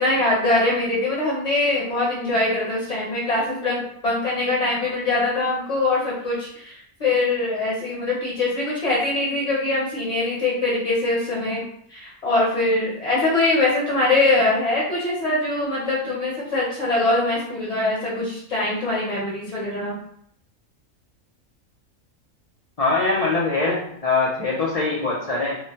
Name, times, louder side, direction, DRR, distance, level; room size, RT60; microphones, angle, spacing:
voice 1, 0.0-11.6 11.9-20.0, left 2 dB, 40° left, -6 dB, 0.7 m, -23 dB
voice 2, 22.8-25.6, left 3 dB, 80° left, -5 dB, 0.3 m, -22 dB
3.1 x 2.1 x 2.8 m, 0.67 s
omnidirectional pair, 1.4 m